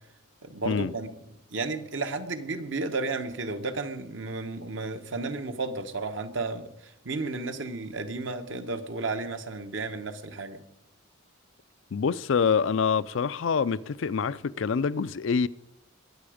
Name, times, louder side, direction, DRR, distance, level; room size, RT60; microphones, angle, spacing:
voice 1, 0.4-1.1 1.5-10.6, right 3 dB, 60° right, 1.1 m, -33 dB
voice 2, 11.9-15.5, left 6 dB, 65° left, 0.4 m, -26 dB
20.5 x 7.9 x 5.0 m
head